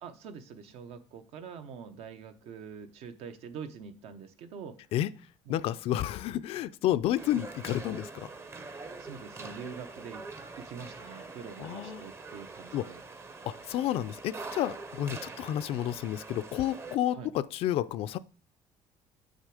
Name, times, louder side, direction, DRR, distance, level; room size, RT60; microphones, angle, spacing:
voice 1, 0.0-4.8 5.5-5.6 9.0-10.2 10.6-13.0 17.1-17.3, right 6 dB, 70° right, 0.9 m, -44 dB
voice 2, 5.5-8.3 11.6-12.0 12.7-12.9 13.5-18.2, left 12 dB, 60° left, 0.4 m, -30 dB
sound 1, 7.2-17.0, right 3 dB, 25° right, 0.7 m, -44 dB
6.8 x 6.4 x 4.9 m
cardioid pair, 140°, 11 cm